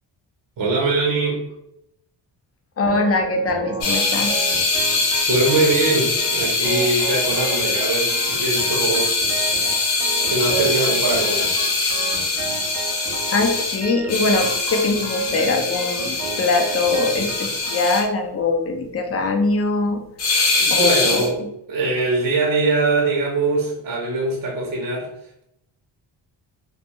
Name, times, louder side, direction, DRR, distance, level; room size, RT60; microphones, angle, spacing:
voice 1, 0.6-1.5 5.3-9.1 10.3-11.6 20.6-25.1, right 2 dB, 45° right, -2 dB, 0.7 m, -22 dB
voice 2, 2.8-4.3 13.3-20.0 20.7-21.5, left 3 dB, 30° left, 4 dB, 0.5 m, -22 dB
Organ, 2.8-17.9, right 5 dB, 85° right, 0.6 m, -33 dB
sound 1, 3.8-18.0 20.2-21.3, left 3 dB, 60° left, 0.7 m, -22 dB
2.2 x 2.2 x 2.8 m, 0.78 s
cardioid pair, 75°, 46 cm